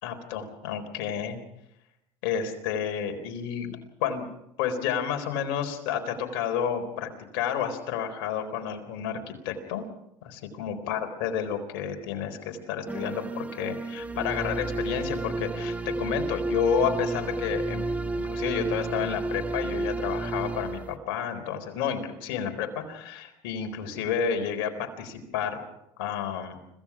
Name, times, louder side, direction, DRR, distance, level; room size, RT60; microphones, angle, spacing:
voice 1, 0.0-1.4 2.2-4.3 4.6-9.8 10.2-17.8 18.2-25.6 26.0-26.6, left 8 dB, 80° left, 5 dB, 4.0 m, -30 dB
sound 1, 12.9-21.0, right 2 dB, 10° right, 1.4 m, -31 dB
26.0 x 16.5 x 6.1 m, 0.84 s
supercardioid pair, 85°, 13 cm